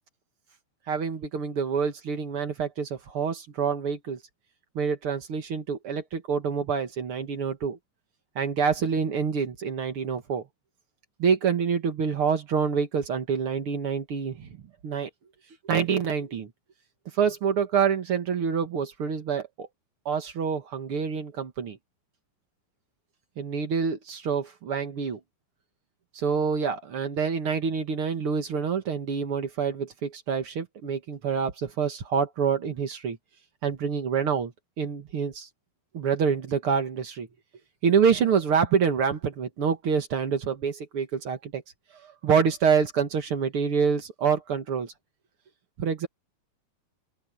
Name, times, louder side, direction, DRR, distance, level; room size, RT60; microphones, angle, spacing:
voice 1, 0.9-4.2 4.7-7.8 8.3-10.4 11.2-14.5 14.8-15.1 15.7-16.5 17.1-19.7 20.0-21.8 23.4-25.2 26.1-33.2 33.6-34.5 34.8-35.5 35.9-37.3 37.8-41.6 42.0-44.9 45.8-46.1, right 6 dB, 60° right, 1.5 m, -26 dB
open air
omnidirectional pair, 4.8 m